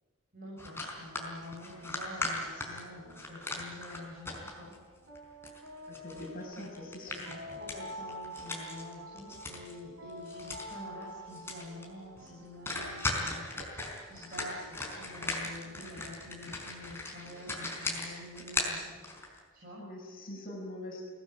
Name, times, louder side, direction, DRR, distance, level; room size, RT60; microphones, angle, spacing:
voice 1, 0.3-4.7 6.1-6.3 7.4-13.4 14.0-18.9 19.5-19.8, left 1 dB, 45° right, -5 dB, 7.1 m, -47 dB
sound 1, 0.6-4.8 5.1-9.8 10.1-10.7 11.0-11.1 11.3-11.9 12.2-12.3 12.7-19.4, left 2 dB, 10° left, 4.6 m, -38 dB
sound 2, 0.7-18.2, left 1 dB, 85° right, 4.2 m, -50 dB
voice 2, 5.9-7.4 19.8-21.1, left 1 dB, 45° left, 0 dB, 6.4 m, -43 dB
23.5 x 18.5 x 9.6 m, 1.6 s
head